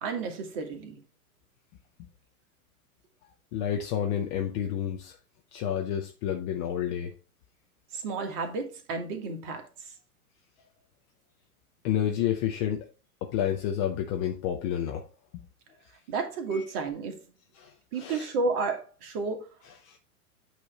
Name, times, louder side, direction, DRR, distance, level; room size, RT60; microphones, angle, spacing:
voice 1, 0.0-1.0 7.9-9.9 16.1-17.3 17.9-19.5, right 4 dB, 40° right, 1.6 m, -32 dB
voice 2, 3.5-5.2 5.5-7.1 11.8-12.8 13.2-15.0 15.3-15.4 16.5-16.6 17.6-18.3 19.8-20.0, left 9 dB, 20° left, 0.4 m, -30 dB
8.5 x 3.1 x 4.8 m
figure-of-eight pair, 105°, 45 cm